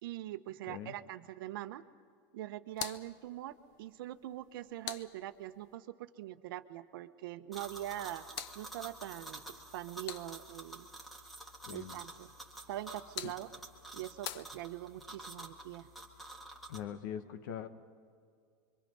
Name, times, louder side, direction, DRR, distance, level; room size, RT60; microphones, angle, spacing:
voice 1, 0.0-1.9 2.3-8.3 8.5-9.4 9.7-10.9 11.7-12.3 12.7-13.5 13.9-15.9, right 14 dB, 65° right, 10 dB, 1.0 m, -43 dB
sound 1, 2.7-5.8 7.7-10.7 12.7-15.1, left 11 dB, 40° left, 0.7 m, -48 dB
sound 2, 7.5-16.8, right 2 dB, ahead, 1.7 m, -50 dB
voice 2, 11.7-12.0 13.2-13.3 16.7-17.7, left 9 dB, 60° left, 10 dB, 1.4 m, -42 dB
26.5 x 24.5 x 5.5 m, 2.2 s
supercardioid pair, 175°, 12 cm